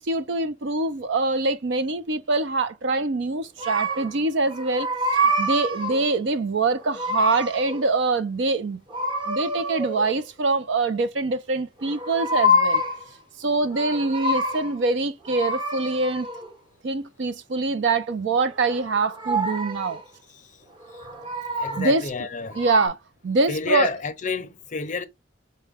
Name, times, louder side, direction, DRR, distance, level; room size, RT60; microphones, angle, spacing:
voice 1, 0.0-4.9 5.4-8.8 9.3-12.8 13.4-16.3 16.8-20.0 21.8-22.3 22.6-23.0 23.2-23.9, right 3 dB, 65° right, 0.5 m, -24 dB
sound 1, 3.6-4.2 4.5-6.1 6.7-7.9 8.9-10.2 11.8-13.1 13.5-14.8 15.2-16.5 18.4-20.0 20.8-22.0 22.5-22.9, equal, 25° right, 0.8 m, -27 dB
voice 2, 21.6-22.6 23.5-25.0, left 4 dB, 40° left, 0.5 m, -29 dB
4.7 x 2.2 x 3.4 m
head